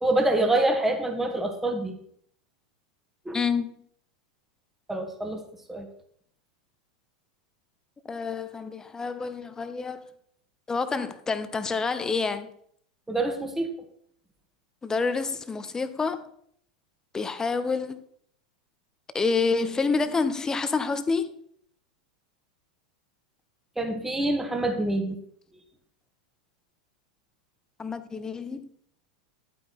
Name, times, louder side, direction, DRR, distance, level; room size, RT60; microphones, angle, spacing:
voice 1, 0.0-2.0 3.3-3.4 4.9-5.4 5.7-5.9 13.1-13.7 23.8-25.2, right 2 dB, 5° right, 1.9 m, -26 dB
voice 2, 3.3-3.7 8.0-10.0 10.7-12.5 14.8-16.2 17.1-18.0 19.1-21.3 27.8-28.7, left 4 dB, 15° left, 1.0 m, -28 dB
11.5 x 8.8 x 4.3 m
figure-of-eight pair, 90°, 4 cm